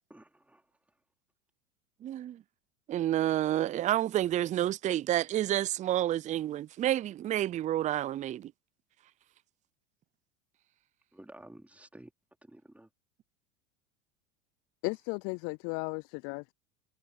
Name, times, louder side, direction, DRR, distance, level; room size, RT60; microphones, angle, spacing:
voice 1, 0.1-0.7 11.1-12.1 12.4-12.9, right 1 dB, 5° right, 4.1 m, -52 dB
voice 2, 2.0-2.4 2.9-8.5, right 12 dB, 20° right, 0.4 m, -29 dB
voice 3, 14.8-16.5, left 33 dB, 40° left, 0.4 m, -35 dB
hypercardioid pair, 80°, 37 cm